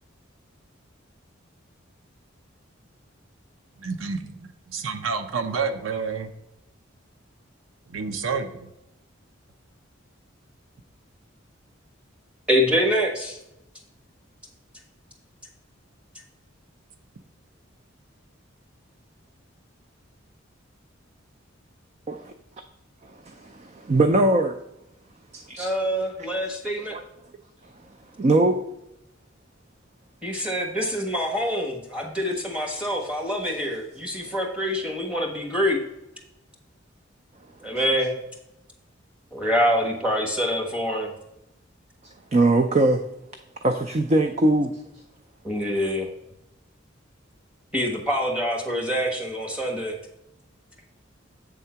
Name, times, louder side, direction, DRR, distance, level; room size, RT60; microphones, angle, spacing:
voice 1, 3.8-6.3 7.9-8.7, right 5 dB, 80° right, 0.7 m, -29 dB
voice 2, 12.5-13.4 25.6-27.0 30.2-35.8 37.6-38.1 39.3-41.1 45.4-46.1 47.7-50.0, equal, 5° right, 1.3 m, -25 dB
voice 3, 23.3-24.6 25.3-25.7 26.9-27.0 28.2-28.6 42.3-43.0 43.6-44.8, right 2 dB, 35° right, 0.4 m, -21 dB
8.1 x 3.7 x 5.6 m
head